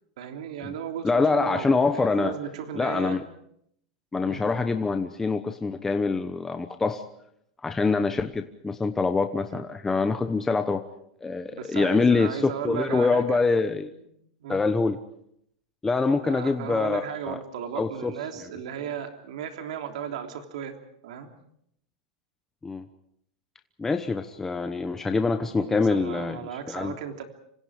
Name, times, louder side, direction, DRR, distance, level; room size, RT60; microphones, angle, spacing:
voice 1, 0.2-3.2 4.2-4.4 9.5-9.7 11.5-13.4 13.8-14.1 14.4-14.6 16.1-20.7 21.0-21.3 25.5-27.2, right 8 dB, 80° right, 4 dB, 3.3 m, -36 dB
voice 2, 1.0-2.3 2.7-3.2 4.1-7.0 7.6-10.8 11.2-13.9 14.5-15.0 15.8-17.4 17.7-18.1 22.6-22.8 23.8-26.4 26.7-26.9, left 4 dB, 10° left, 7 dB, 1.0 m, -25 dB
26.5 x 26.0 x 5.0 m, 0.72 s
supercardioid pair, 145°, 4 cm